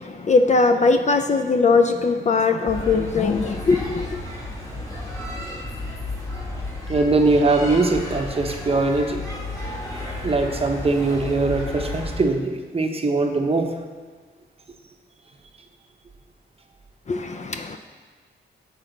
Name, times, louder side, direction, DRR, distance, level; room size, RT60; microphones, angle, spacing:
voice 1, 0.0-4.1 17.1-17.8, left 4 dB, 40° left, 0.4 m, -20 dB
sound 1, 2.7-12.2, left 2 dB, 15° left, 1.4 m, -32 dB
voice 2, 6.9-9.2 10.2-13.8, right 3 dB, 30° right, 0.7 m, -21 dB
7.2 x 6.1 x 3.9 m
wide cardioid pair, 105°, 20 cm